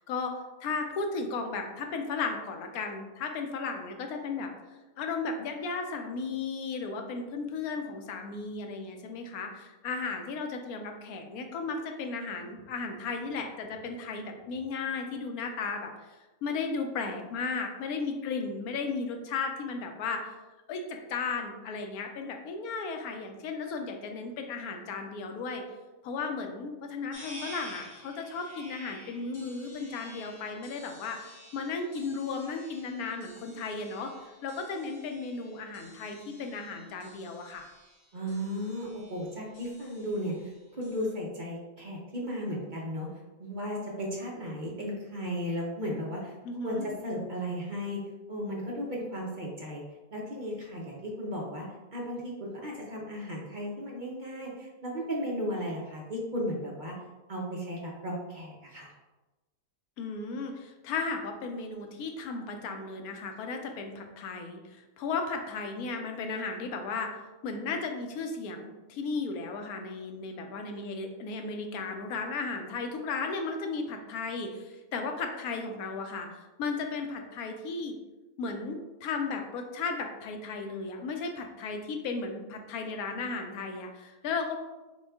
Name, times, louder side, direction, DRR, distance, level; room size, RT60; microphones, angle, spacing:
voice 1, 0.6-4.5 5.0-15.9 16.4-20.3 20.7-25.6 26.0-34.1 34.4-37.7 46.4-46.9 60.0-67.1 67.4-78.0 78.4-84.6, left 4 dB, 90° left, 4 dB, 1.1 m, -35 dB
sound 1, 27.1-41.1, equal, 55° left, 1.1 m, -51 dB
voice 2, 38.1-43.1 43.4-46.3 46.6-48.0 48.3-49.8 50.1-51.7 51.9-57.0 57.3-58.9, equal, 45° right, -3 dB, 0.7 m, -35 dB
6.1 x 2.4 x 3.4 m, 1.1 s
omnidirectional pair, 1.5 m